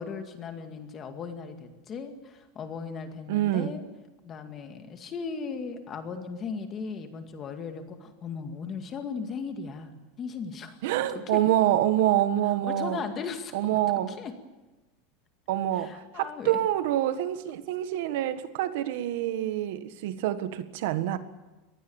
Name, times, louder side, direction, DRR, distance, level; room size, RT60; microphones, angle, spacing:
voice 1, 0.0-3.8 4.2-9.9 10.2-10.8 11.3-11.4 12.6-13.8 14.1-14.3 15.8-16.6, left 5 dB, 20° left, 6 dB, 2.1 m, -37 dB
voice 2, 3.3-3.7 10.8-13.1 13.5-14.1 15.5-21.2, right 12 dB, 60° right, 11 dB, 1.6 m, -26 dB
25.0 x 19.5 x 7.2 m, 1.1 s
supercardioid pair, 175°, 0 cm